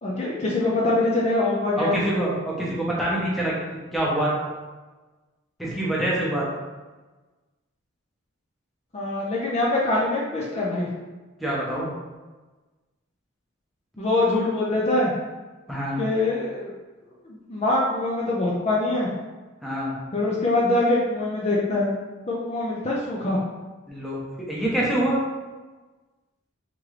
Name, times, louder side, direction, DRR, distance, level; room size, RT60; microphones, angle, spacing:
voice 1, 0.0-2.0 8.9-10.9 14.0-15.1 16.0-16.7 17.2-19.1 20.1-21.9 22.3-23.4, left 2 dB, 30° left, -4 dB, 0.5 m, -24 dB
voice 2, 1.8-3.6 3.9-4.3 5.6-6.5 11.4-11.9 15.7-16.0 19.6-20.0 23.9-24.2 24.5-25.2, right 1 dB, ahead, -7 dB, 0.8 m, -25 dB
3.7 x 3.0 x 3.2 m, 1.2 s
head